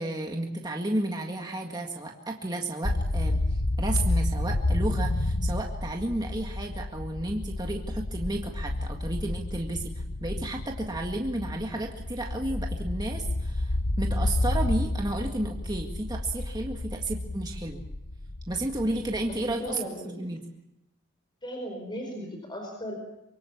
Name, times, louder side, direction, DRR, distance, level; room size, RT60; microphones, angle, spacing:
voice 1, 0.0-3.4 3.8-17.8 18.5-19.8 20.0-20.4, right 1 dB, 20° right, 1 dB, 1.8 m, -32 dB
sound 1, 2.8-19.7, left 1 dB, 60° left, 1.1 m, -30 dB
voice 2, 19.3-20.3 21.4-22.9, equal, 20° left, 2 dB, 4.9 m, -37 dB
25.5 x 23.0 x 7.2 m, 0.88 s
head